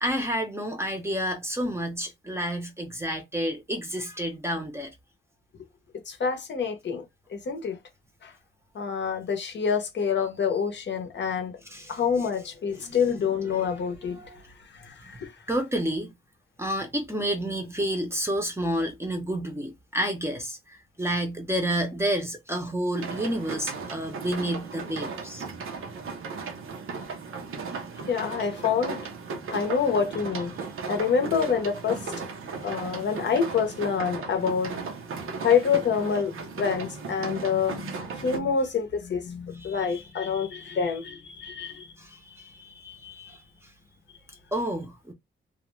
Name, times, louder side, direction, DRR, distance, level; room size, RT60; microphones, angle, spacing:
voice 1, 0.0-4.9 11.7-12.0 13.5-14.4 15.0-15.2 15.5-16.1 16.6-20.6 21.0-25.4 39.6-40.3 42.0-43.4 44.5-45.1, equal, 10° right, 0.6 m, -30 dB
voice 2, 6.1-7.0 7.3-7.8 8.2-8.3 8.7-11.5 11.9-14.2 14.8-15.3 28.1-29.0 29.5-30.5 30.9-32.1 32.6-34.7 35.4-41.9, left 6 dB, 60° left, 0.6 m, -27 dB
sound 1, 22.9-38.4, right 5 dB, 90° right, 0.6 m, -36 dB
2.4 x 2.1 x 3.0 m
wide cardioid pair, 140°, 21 cm